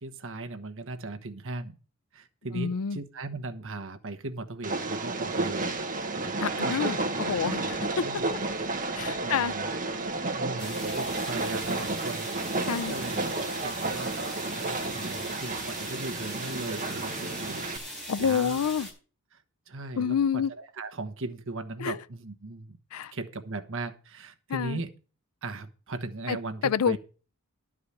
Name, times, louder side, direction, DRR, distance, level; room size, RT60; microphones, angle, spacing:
voice 1, 0.0-1.7 2.1-5.7 6.4-6.9 7.4-7.5 7.8-8.4 8.8-9.7 10.4-12.3 12.9-17.7 18.2-18.6 19.3-22.8 23.1-24.9 25.4-27.0, right 2 dB, 60° right, 1.2 m, -38 dB
voice 2, 2.5-3.0 6.4-8.0 8.9-9.5 12.7-12.9 18.1-18.9 20.0-20.5 21.8-22.0 22.9-23.1 24.5-24.8 26.3-26.4 26.6-27.0, left 7 dB, 75° left, 0.4 m, -28 dB
Train, 4.6-17.8, right 3 dB, 40° right, 1.3 m, -31 dB
sound 1, 10.6-18.9, equal, ahead, 5.1 m, -40 dB
11.5 x 4.9 x 8.4 m
head